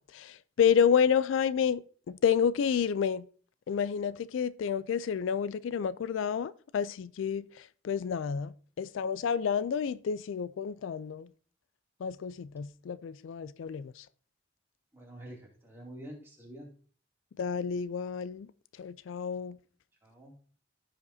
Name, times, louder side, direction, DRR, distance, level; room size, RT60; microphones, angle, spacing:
voice 1, 0.1-3.3 3.7-11.3 12.0-14.1 17.4-18.5 18.8-19.6, left 7 dB, 80° left, 0.3 m, -30 dB
voice 2, 14.9-16.7 20.0-20.3, right 1 dB, 10° right, 2.5 m, -47 dB
15.0 x 5.1 x 2.7 m
head